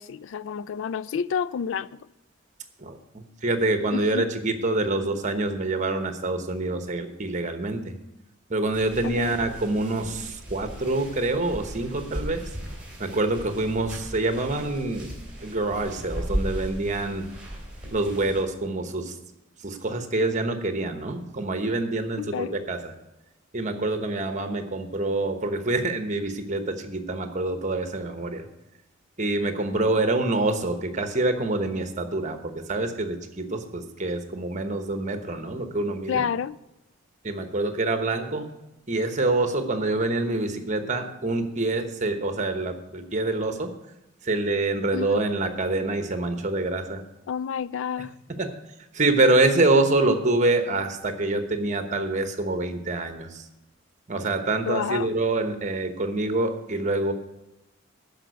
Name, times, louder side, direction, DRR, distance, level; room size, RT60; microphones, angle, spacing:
voice 1, 0.0-1.9 3.9-4.3 9.0-9.4 22.2-22.6 36.1-36.6 44.9-45.2 47.3-48.1 54.7-55.1, left 7 dB, 65° left, 0.3 m, -29 dB
voice 2, 2.8-7.9 8.5-12.4 13.0-15.1 15.4-17.3 17.9-19.2 19.6-22.9 23.5-28.4 29.2-36.2 37.2-38.5 38.9-43.7 44.2-47.0 48.4-48.5 48.9-53.5 54.1-57.1, right 2 dB, 35° right, 1.1 m, -26 dB
sound 1, 8.7-18.4, equal, 5° right, 3.4 m, -36 dB
13.0 x 5.2 x 8.0 m
head